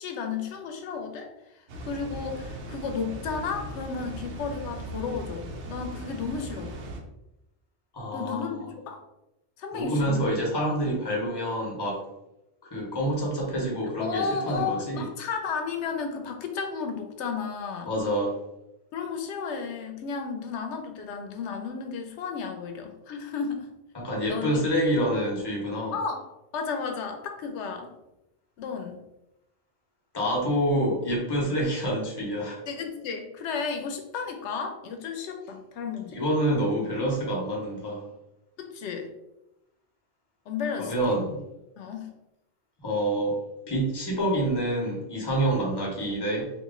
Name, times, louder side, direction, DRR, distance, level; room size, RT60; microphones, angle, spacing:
voice 1, 0.0-6.8 8.1-9.0 9.6-10.2 14.0-17.9 18.9-23.7 24.3-24.6 25.9-26.3 26.5-27.9 28.6-29.0 30.7-30.9 32.7-36.2 38.6-39.1 40.5-41.3 41.8-42.1, left 5 dB, 90° left, 4 dB, 0.9 m, -33 dB
Water, 1.7-7.0, right 1 dB, 85° right, 0.9 m, -38 dB
voice 2, 7.9-8.6 9.7-12.0 12.7-15.0 17.8-18.4 23.9-25.9 30.1-32.6 36.1-38.0 40.8-41.4 42.8-43.4 43.7-46.5, right 1 dB, 25° left, -4 dB, 0.9 m, -27 dB
2.9 x 2.4 x 3.6 m, 0.92 s
omnidirectional pair, 1.1 m